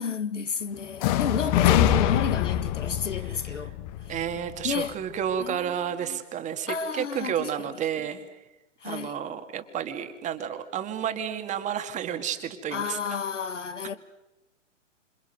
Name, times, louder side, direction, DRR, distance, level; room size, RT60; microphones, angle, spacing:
voice 1, 0.0-3.7 4.6-4.9 5.4-6.2 6.7-7.7 8.0-8.1 8.8-9.2 12.7-13.9, left 6 dB, 70° left, 1.9 m, -31 dB
sound 1, 1.0-4.9, left 12 dB, 30° left, 1.2 m, -25 dB
voice 2, 4.1-8.3 8.8-13.2, right 9 dB, 20° right, 2.1 m, -31 dB
28.5 x 27.0 x 6.6 m
figure-of-eight pair, 115°, 37 cm